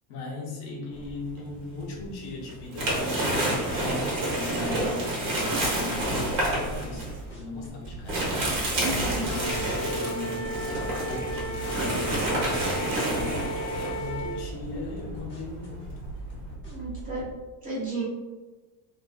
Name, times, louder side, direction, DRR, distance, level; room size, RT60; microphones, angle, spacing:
voice 1, 0.1-8.4 8.9-13.5 13.9-15.9, left 2 dB, 80° left, -3 dB, 0.9 m, -38 dB
sound 1, 1.0-2.0 2.4-16.5, right 1 dB, 55° right, 1.0 m, -29 dB
sound 2, 6.0-17.3, right 3 dB, 30° left, 0.8 m, -41 dB
voice 2, 8.8-9.3 16.7-17.2 17.6-18.0, right 2 dB, 20° right, -9 dB, 1.2 m, -33 dB
Wind instrument woodwind instrument, 9.3-14.4, right 1 dB, 45° left, 0.4 m, -34 dB
2.6 x 2.5 x 2.2 m, 1.2 s
cardioid pair, 150°, 41 cm